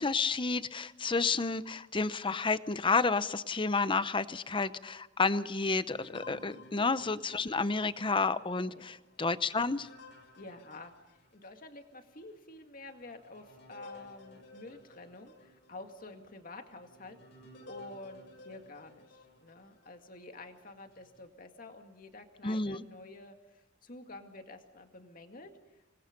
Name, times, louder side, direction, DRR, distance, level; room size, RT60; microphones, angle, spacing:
voice 1, 0.0-9.9 22.4-22.8, left 4 dB, 25° left, 14 dB, 0.7 m, -30 dB
sound 1, 5.9-11.7 12.2-12.3 12.9-20.1 20.7-21.3, left 2 dB, 65° left, 5.9 m, -55 dB
voice 2, 6.3-6.7 8.6-9.0 10.4-25.8, left 2 dB, 45° left, 5 dB, 2.1 m, -50 dB
26.5 x 20.5 x 5.3 m, 0.99 s
head